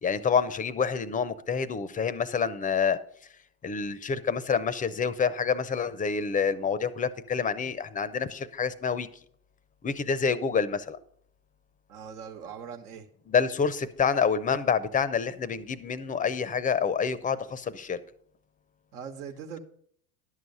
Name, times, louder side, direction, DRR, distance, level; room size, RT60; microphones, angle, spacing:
voice 1, 0.0-3.0 3.6-9.1 9.8-11.0 13.3-18.0, left 6 dB, 20° left, 0.5 m, -27 dB
voice 2, 11.9-13.1 18.9-19.6, right 7 dB, 75° right, 1.2 m, -41 dB
11.0 x 6.5 x 5.4 m
hypercardioid pair, 90°, 45 cm